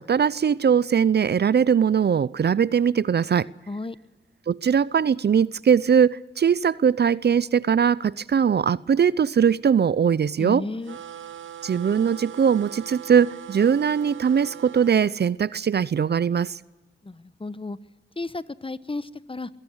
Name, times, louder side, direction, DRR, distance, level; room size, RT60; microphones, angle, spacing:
voice 1, 0.0-3.5 4.5-10.6 11.6-16.6, right 7 dB, 55° right, 21 dB, 0.6 m, -21 dB
voice 2, 10.4-11.0 17.0-17.8 18.2-19.5, left 2 dB, 25° left, 16 dB, 1.1 m, -33 dB
sound 1, 10.8-15.0, right 10 dB, 80° right, 0.9 m, -40 dB
22.5 x 17.0 x 8.0 m, 1.1 s
supercardioid pair, 40°, 20 cm